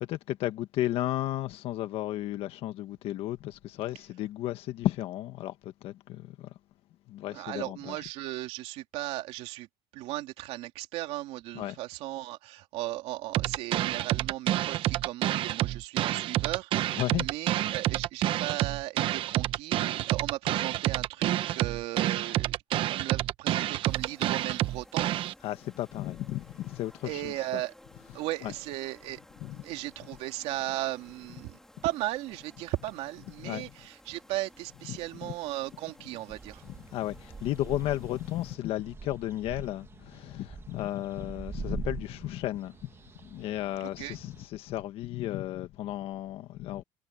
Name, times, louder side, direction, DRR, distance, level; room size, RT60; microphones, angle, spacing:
voice 1, 0.0-6.5 7.1-7.9 11.5-11.8 17.0-17.3 25.4-27.3 28.4-28.5 29.4-29.6 33.4-33.6 34.9-35.3 36.9-42.9 43.2-46.8, left 14 dB, 60° left, 1.5 m, -34 dB
voice 2, 7.3-9.7 9.9-25.1 27.0-27.7 28.1-29.2 29.5-36.6 44.0-44.2, right 16 dB, 70° right, 2.8 m, -36 dB
sound 1, 13.3-25.3, right 13 dB, 50° right, 0.8 m, -28 dB
sound 2, 23.9-38.6, left 1 dB, 5° left, 3.1 m, -56 dB
sound 3, 36.3-44.5, right 5 dB, 20° right, 1.7 m, -44 dB
cardioid pair, 145°, 11 cm